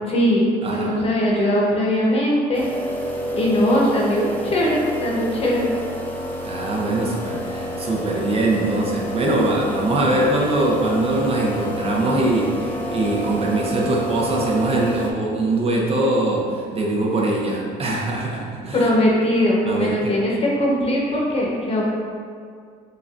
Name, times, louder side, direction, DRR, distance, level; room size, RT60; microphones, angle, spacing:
voice 1, 0.1-2.7 3.3-5.7 18.7-21.9, equal, 35° left, -3 dB, 0.9 m, -20 dB
voice 2, 0.6-1.0 6.4-18.9 19.7-20.1, right 2 dB, 35° right, -2 dB, 0.6 m, -22 dB
sound 1, 2.5-15.1, equal, 10° left, 0.5 m, -29 dB
6.4 x 2.2 x 2.5 m, 2.2 s
cardioid pair, 110°, 17 cm